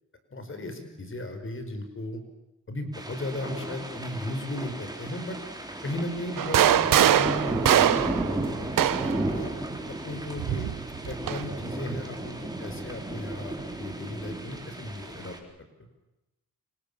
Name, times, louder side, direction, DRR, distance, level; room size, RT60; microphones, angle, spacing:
voice 1, 0.3-2.2 2.7-5.4 5.8-9.5 9.9-10.7 11.1-15.4, left 1 dB, 40° left, 7 dB, 5.5 m, -36 dB
sound 1, 2.9-15.4, right 2 dB, 10° right, 4.3 m, -34 dB
sound 2, 6.4-9.3 10.4-11.5, right 11 dB, 85° right, 1.3 m, -22 dB
28.0 x 25.5 x 7.1 m, 0.94 s
cardioid pair, 80°, 32 cm